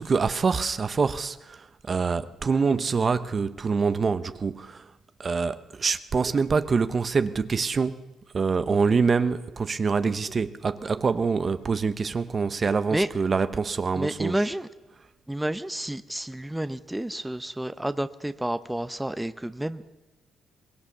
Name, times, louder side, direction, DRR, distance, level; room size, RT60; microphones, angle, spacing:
voice 1, 0.0-4.9 5.2-7.9 8.3-14.5, right 5 dB, 40° right, 0.8 m, -25 dB
voice 2, 14.0-14.7 15.3-19.8, right 1 dB, 10° right, 0.8 m, -30 dB
22.5 x 20.0 x 6.7 m
cardioid pair, 90°, 0 cm